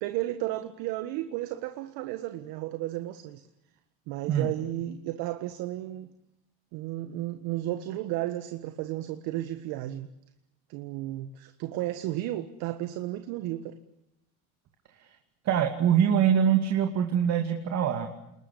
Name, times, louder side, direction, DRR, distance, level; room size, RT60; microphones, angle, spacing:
voice 1, 0.0-3.4 4.1-6.1 6.7-10.1 10.7-13.8, right 15 dB, 55° right, 1.6 m, -33 dB
voice 2, 15.4-18.1, right 8 dB, 40° right, 2.6 m, -24 dB
29.0 x 21.0 x 8.4 m
supercardioid pair, 135°, 42 cm